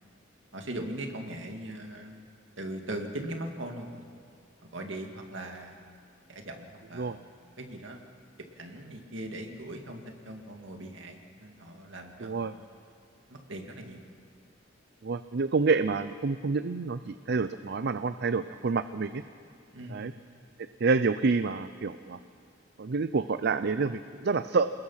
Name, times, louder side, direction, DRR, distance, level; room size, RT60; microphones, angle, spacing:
voice 1, 0.5-2.2 2.6-4.0 4.6-5.8 6.3-7.2 7.6-8.0 8.6-12.7 13.3-14.0 19.7-20.0, right 1 dB, 75° right, 3 dB, 2.3 m, -40 dB
voice 2, 12.2-12.5 15.0-19.2 19.9-20.1 20.8-22.2 22.8-24.7, right 4 dB, 55° right, 12 dB, 0.5 m, -28 dB
28.5 x 20.5 x 5.7 m, 2.3 s
head